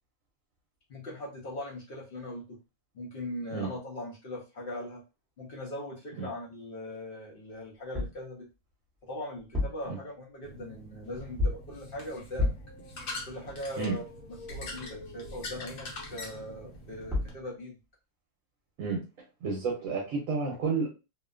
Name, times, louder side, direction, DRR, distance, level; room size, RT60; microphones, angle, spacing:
voice 1, 0.9-2.6 2.9-5.0 5.4-8.4 9.0-12.5 13.3-14.0 14.5-17.8, left 1 dB, 50° left, -3 dB, 0.7 m, -40 dB
sound 1, 7.9-8.3 9.4-9.9 11.4-11.8 12.4-12.8 16.8-16.9 17.1-17.4, left 2 dB, ahead, 0.7 m, -30 dB
sound 2, 10.4-17.3, left 1 dB, 70° left, 1.2 m, -43 dB
voice 2, 19.4-20.9, right 4 dB, 70° right, -1 dB, 1.1 m, -30 dB
2.7 x 2.2 x 2.3 m, 0.28 s
omnidirectional pair, 1.5 m